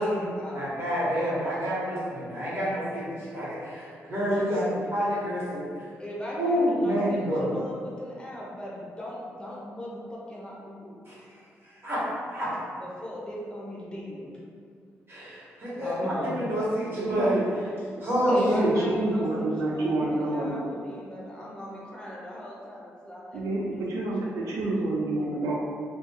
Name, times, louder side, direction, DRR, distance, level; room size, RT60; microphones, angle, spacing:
voice 1, 0.0-0.7 4.4-4.7 6.0-11.0 12.8-14.4 15.8-16.5 18.3-23.4 23.7-23.8 24.3-24.5, equal, 15° left, -6 dB, 0.7 m, -38 dB
voice 2, 0.5-5.8 6.4-7.5 11.1-11.2 11.6-12.0 12.3-12.5 15.1-17.4 18.0-18.7, equal, 45° right, -8 dB, 1.1 m, -28 dB
voice 3, 16.9-17.4 17.9-20.7 23.3-25.5, right 2 dB, 75° right, -4 dB, 0.3 m, -28 dB
2.6 x 2.2 x 2.2 m, 2.1 s
supercardioid pair, 50°, 6 cm